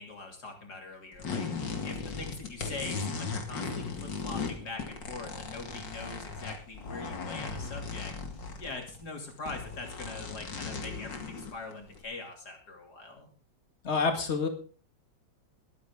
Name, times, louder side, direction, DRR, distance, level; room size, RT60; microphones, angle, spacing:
voice 1, 0.0-1.5 1.8-8.1 8.6-13.3, left 3 dB, 60° left, 2 dB, 3.5 m, -42 dB
sound 1, 1.2-9.0 9.3-12.0, left 4 dB, 80° left, 2.7 m, -37 dB
voice 2, 13.8-14.5, left 4 dB, 40° left, 5 dB, 2.3 m, -27 dB
21.5 x 9.7 x 3.8 m, 0.38 s
omnidirectional pair, 2.0 m